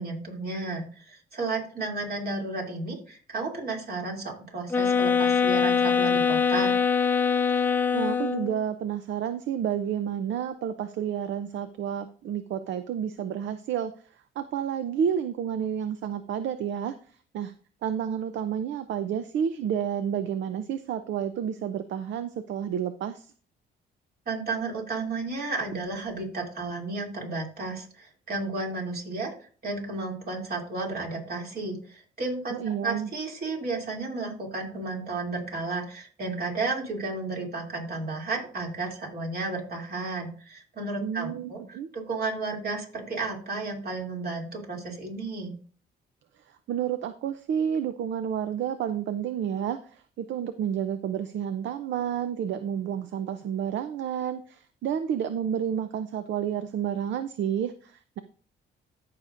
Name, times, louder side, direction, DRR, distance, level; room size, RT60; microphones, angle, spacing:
voice 1, 0.0-6.8 24.3-29.3 29.6-45.5, right 3 dB, 50° right, -1 dB, 2.9 m, -33 dB
sound 1, 4.7-8.6, left 6 dB, 10° left, 0.7 m, -23 dB
voice 2, 7.6-16.9 17.3-17.5 17.8-23.3 32.5-33.1 41.0-41.9 46.5-58.2, right 8 dB, 70° right, 11 dB, 0.6 m, -30 dB
14.0 x 5.8 x 2.5 m, 0.42 s
cardioid pair, 90°, 20 cm